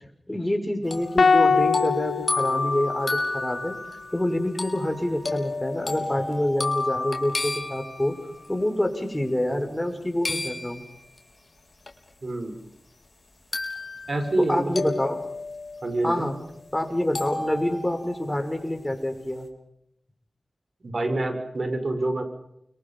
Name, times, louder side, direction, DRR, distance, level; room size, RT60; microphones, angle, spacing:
voice 1, 0.3-3.7 4.1-8.1 8.5-10.8 14.4-15.2 16.0-16.4 16.7-19.5, left 1 dB, 15° left, 5 dB, 6.1 m, -27 dB
sound 1, 0.9-8.5 10.2-11.2 11.9-12.0 13.5-14.5 14.8-16.5 17.1-18.5, left 2 dB, 55° left, 4.2 m, -31 dB
sound 2, 1.2-3.5, left 4 dB, 85° left, 1.2 m, -23 dB
voice 2, 12.2-12.5 14.1-14.8 15.8-16.3 20.8-22.2, right 2 dB, 60° right, 7 dB, 5.4 m, -27 dB
29.5 x 24.0 x 5.6 m, 0.75 s
cardioid pair, 45°, 0 cm